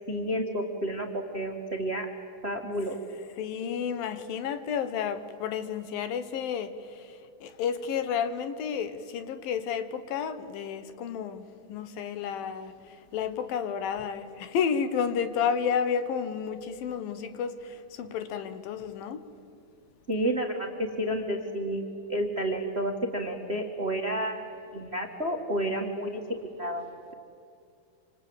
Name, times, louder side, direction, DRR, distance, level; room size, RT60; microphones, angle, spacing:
voice 1, 0.1-2.1 2.4-3.0 20.1-26.2 26.6-27.1, right 1 dB, 40° right, 0.9 m, -31 dB
voice 2, 3.4-6.7 7.4-11.4 11.7-12.7 13.1-17.6 18.0-19.2, left 7 dB, 75° left, 2.8 m, -31 dB
27.0 x 27.0 x 7.9 m
omnidirectional pair, 4.4 m